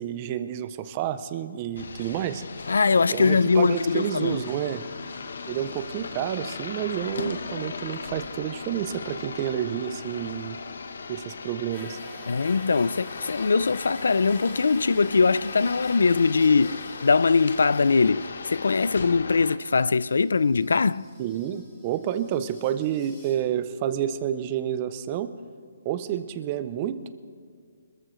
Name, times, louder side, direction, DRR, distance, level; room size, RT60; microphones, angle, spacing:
voice 1, 0.0-2.4 3.1-4.8 5.5-10.6 11.1-12.0 21.2-25.3 25.9-27.1, right 10 dB, 20° right, 0.4 m, -29 dB
sound 1, 1.8-19.6, left 4 dB, 60° left, 0.9 m, -37 dB
voice 2, 2.7-4.4 12.3-21.1, left 4 dB, 80° left, 0.4 m, -22 dB
sound 2, 11.7-18.8 19.7-23.4, equal, 10° left, 2.8 m, -49 dB
25.0 x 14.0 x 3.1 m
hypercardioid pair, 180°, 0 cm